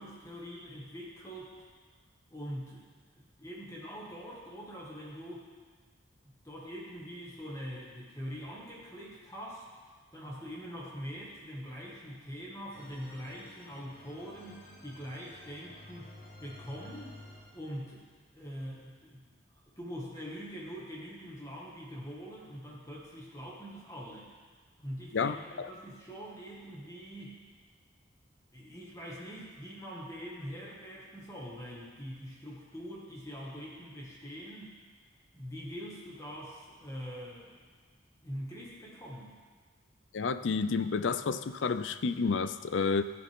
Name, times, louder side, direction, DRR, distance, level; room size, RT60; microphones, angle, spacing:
voice 1, 0.0-1.5 2.3-2.9 3.1-5.5 6.4-9.6 10.1-16.1 16.4-17.2 17.5-18.0 18.3-19.4 19.8-24.3 24.8-27.4 28.5-34.8 35.3-37.7 38.2-39.4, equal, 15° left, -5 dB, 2.0 m, -43 dB
sound 1, 12.7-17.9, left 1 dB, 45° left, 2.1 m, -52 dB
voice 2, 25.1-25.7 40.1-43.0, left 5 dB, 75° left, 12 dB, 0.5 m, -30 dB
17.0 x 8.8 x 3.7 m, 1.5 s
head